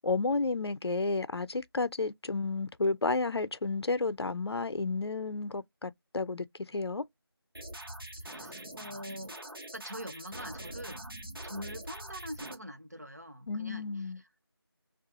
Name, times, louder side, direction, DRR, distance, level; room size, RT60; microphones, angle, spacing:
voice 1, 0.0-7.0 13.5-14.2, left 3 dB, 90° left, 0.4 m, -32 dB
sound 1, 7.5-12.5, right 1 dB, 65° right, 1.0 m, -44 dB
voice 2, 8.2-9.4 9.7-11.1 11.4-14.3, equal, 40° right, 0.5 m, -44 dB
2.7 x 2.4 x 2.6 m
figure-of-eight pair, 180°, 13 cm